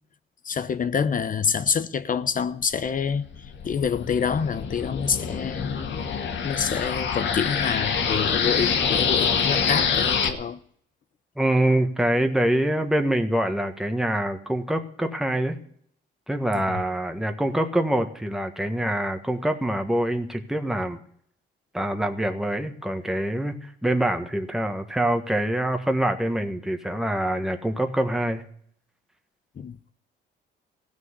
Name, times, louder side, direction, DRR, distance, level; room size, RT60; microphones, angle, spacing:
voice 1, 0.4-3.3 3.6-5.8 6.4-10.6 16.7-16.8 29.6-29.8, left 6 dB, 45° left, 0.8 m, -27 dB
sound 1, 3.0-10.3, left 6 dB, 65° left, 2.0 m, -26 dB
voice 2, 11.4-15.6 16.3-21.0 21.7-28.4, right 1 dB, ahead, 1.6 m, -25 dB
16.0 x 6.4 x 9.7 m
cardioid pair, 90°, 20 cm